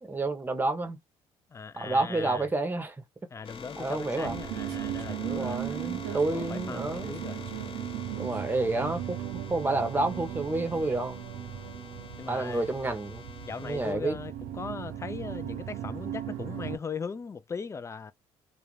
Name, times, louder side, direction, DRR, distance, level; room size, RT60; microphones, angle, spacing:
voice 1, 0.0-1.0 1.8-3.0 3.8-4.3 5.3-7.2 8.2-11.2 12.3-13.2 13.6-14.2, right 2 dB, 15° right, 0.8 m, -29 dB
voice 2, 1.5-2.5 3.3-5.6 6.1-7.4 12.2-12.6 13.4-18.1, left 5 dB, 25° left, 0.3 m, -39 dB
sound 1, 3.4-13.9, left 5 dB, 50° left, 0.8 m, -46 dB
sound 2, 4.2-16.8, right 11 dB, 90° right, 0.5 m, -37 dB
2.4 x 2.2 x 3.1 m
cardioid pair, 90°, 12 cm